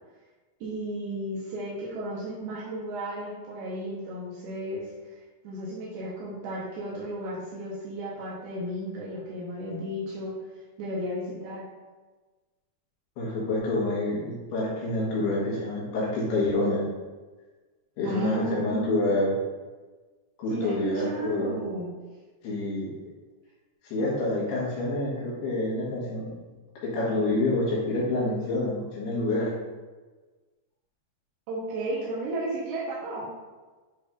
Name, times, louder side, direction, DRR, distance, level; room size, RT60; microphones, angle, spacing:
voice 1, 0.6-10.3 10.8-11.7 18.0-19.1 20.5-21.9 31.5-33.3, right 1 dB, 80° right, -6 dB, 3.2 m, -34 dB
voice 2, 13.2-16.8 18.0-19.3 20.4-21.5 22.4-22.9 23.8-26.3 26.8-29.5, left 2 dB, 70° left, -6 dB, 3.5 m, -27 dB
10.0 x 4.0 x 2.6 m, 1.3 s
omnidirectional pair, 5.0 m